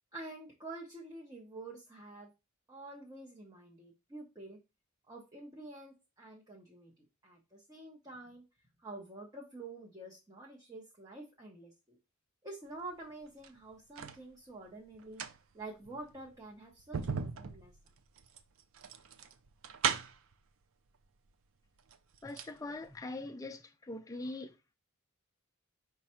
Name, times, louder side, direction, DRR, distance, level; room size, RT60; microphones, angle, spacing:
voice 1, 0.1-2.3 2.7-4.6 5.1-6.9 7.2-8.4 8.8-12.0 12.4-15.2 15.5-17.7, right 2 dB, 15° right, 0.8 m, -48 dB
sound 1, 13.3-14.2 14.9-20.3 21.3-21.4 21.8-22.6 22.9-23.0, right 6 dB, 65° right, 0.5 m, -38 dB
voice 2, 22.2-24.5, left 2 dB, 15° left, 0.4 m, -42 dB
5.2 x 2.3 x 4.3 m
head